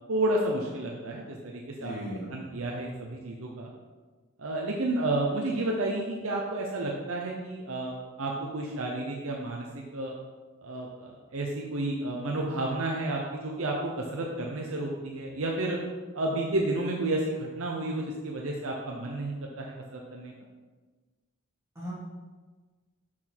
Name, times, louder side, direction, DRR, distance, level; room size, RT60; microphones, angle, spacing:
voice 1, 0.1-1.9 2.3-3.7 4.4-9.7 9.9-10.2 10.6-15.8 16.1-20.3, right 2 dB, 70° right, -1 dB, 0.8 m, -31 dB
voice 2, 1.8-2.3 21.7-21.9, equal, 15° right, -8 dB, 2.4 m, -36 dB
6.3 x 6.0 x 4.5 m, 1.3 s
head